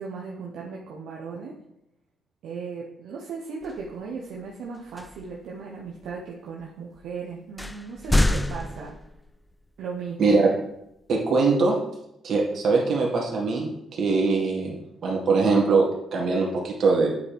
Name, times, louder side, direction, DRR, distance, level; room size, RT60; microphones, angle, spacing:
voice 1, 0.0-1.5 2.4-8.9 9.8-10.4, right 5 dB, 80° right, -2 dB, 0.8 m, -36 dB
sound 1, 3.6-3.9 5.0-5.4 6.0-6.1 7.0-7.1 7.6-9.5, left 1 dB, 10° left, 0.3 m, -26 dB
voice 2, 10.2-10.5 11.1-11.8 12.2-14.7 15.0-17.1, right 4 dB, 60° right, -1 dB, 1.9 m, -22 dB
8.4 x 4.6 x 3.4 m, 0.82 s
cardioid pair, 90°, 0 cm